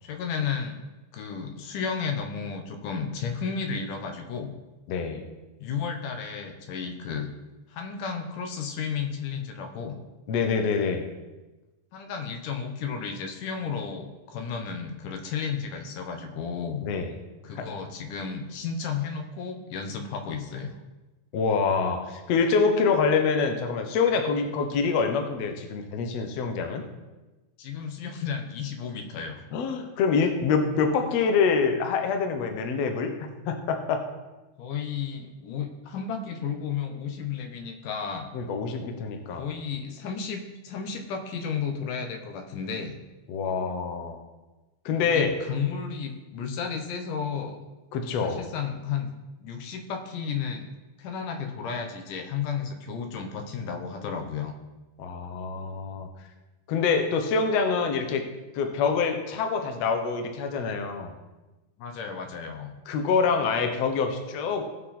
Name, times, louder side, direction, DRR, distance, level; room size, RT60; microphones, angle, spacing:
voice 1, 0.0-0.8 1.1-4.5 5.6-7.3 7.7-10.0 11.9-16.8 17.4-20.8 27.6-29.4 34.6-38.3 39.3-43.0 45.0-47.6 48.2-49.1 49.4-50.7 51.0-54.5 61.8-62.8, left 6 dB, 90° left, 4 dB, 2.7 m, -33 dB
voice 2, 4.9-5.2 10.3-11.1 16.8-17.1 17.6-17.7 21.3-26.8 29.5-33.1 33.5-34.0 38.3-39.5 43.3-44.2 44.9-45.4 47.9-48.4 55.0-56.1 56.7-58.2 58.5-61.1 62.9-64.7, left 5 dB, 65° left, 5 dB, 2.0 m, -25 dB
17.0 x 6.0 x 4.2 m, 1.1 s
omnidirectional pair, 3.6 m